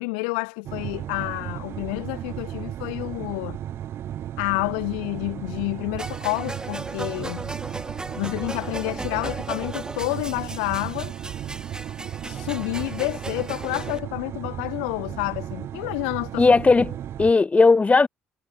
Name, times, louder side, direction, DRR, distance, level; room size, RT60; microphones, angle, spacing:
voice 1, 0.0-3.6 4.4-7.5 8.1-11.1 12.3-16.5, left 34 dB, 80° left, 2.5 m, -29 dB
industrial gas heater, 0.6-17.3, right 11 dB, 60° right, 2.3 m, -35 dB
sound 1, 6.0-14.0, right 2 dB, 15° right, 7.7 m, -36 dB
voice 2, 16.4-18.1, left 4 dB, 30° left, 2.8 m, -17 dB
hypercardioid pair, 55°, 5 cm